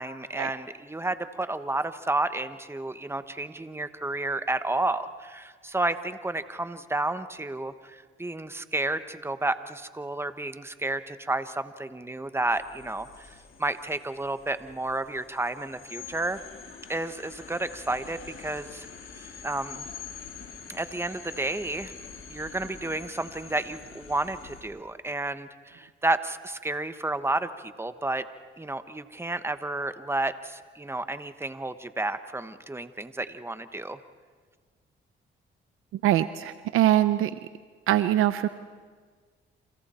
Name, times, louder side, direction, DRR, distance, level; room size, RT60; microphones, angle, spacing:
voice 1, 0.0-13.3 13.6-16.4 16.9-18.9 19.2-19.9 20.7-21.9 22.3-28.3 28.6-34.0, right 2 dB, 10° right, 11 dB, 1.2 m, -31 dB
sound 1, 12.5-24.6, left 6 dB, 70° left, 3.9 m, -45 dB
voice 2, 36.0-37.3 37.9-38.5, right 13 dB, 85° right, 12 dB, 0.7 m, -23 dB
30.0 x 28.0 x 4.4 m, 1.5 s
cardioid pair, 70°, 21 cm